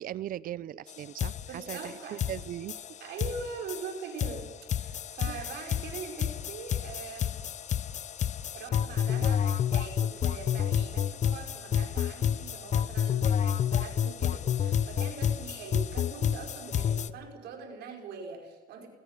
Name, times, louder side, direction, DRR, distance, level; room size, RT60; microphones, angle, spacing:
voice 1, 0.0-3.0 5.3-5.5, right 12 dB, 55° right, 20 dB, 0.7 m, -39 dB
sound 1, 0.9-1.0 1.2-17.1, left 9 dB, 45° left, 0.8 m, -30 dB
voice 2, 1.5-2.2 3.0-7.4 8.5-18.9, right 5 dB, 75° right, 2 dB, 5.1 m, -42 dB
20.5 x 19.5 x 6.7 m, 1.2 s
cardioid pair, 110°, 17 cm